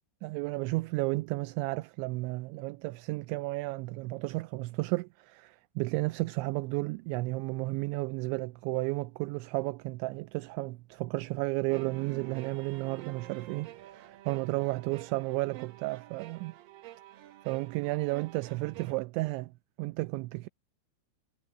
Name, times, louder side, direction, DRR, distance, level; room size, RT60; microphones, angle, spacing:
voice 1, 0.2-16.5 17.5-20.5, right 23 dB, 85° right, 2.8 m, -33 dB
sound 1, 11.7-19.0, right 14 dB, 65° right, 2.5 m, -48 dB
omnidirectional pair, 5.4 m